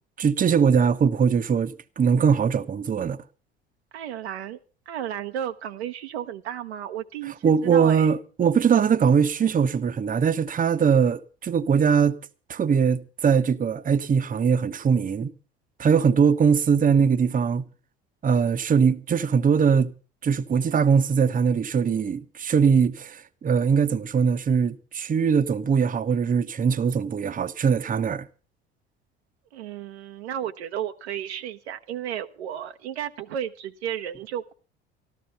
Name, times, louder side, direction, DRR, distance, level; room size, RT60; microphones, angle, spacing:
voice 1, 0.2-3.2 7.4-12.2 12.5-15.3 15.8-17.6 18.2-19.9 20.2-28.3, right 6 dB, 25° right, 0.9 m, -21 dB
voice 2, 3.9-4.6 4.9-8.1 29.5-34.5, right 10 dB, 80° right, 1.0 m, -33 dB
14.0 x 13.0 x 5.5 m
hypercardioid pair, 65°, 32 cm